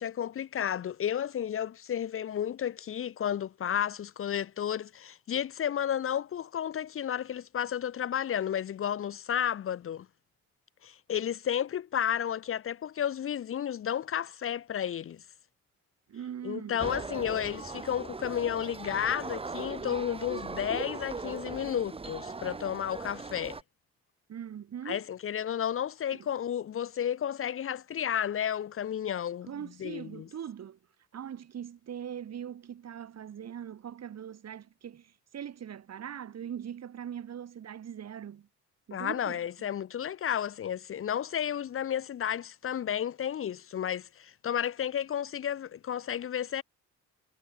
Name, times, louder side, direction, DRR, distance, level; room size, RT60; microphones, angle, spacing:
voice 1, 0.0-10.1 10.8-15.2 16.4-23.6 24.9-29.5 29.8-30.3 38.9-46.6, left 9 dB, 45° left, 0.7 m, -32 dB
voice 2, 16.1-16.9 24.3-25.0 26.1-26.3 29.5-30.8 31.1-38.5 38.9-39.4, right 9 dB, 55° right, 3.7 m, -41 dB
sound 1, 16.8-23.6, right 4 dB, 20° right, 0.8 m, -39 dB
cardioid pair, 90°, 30 cm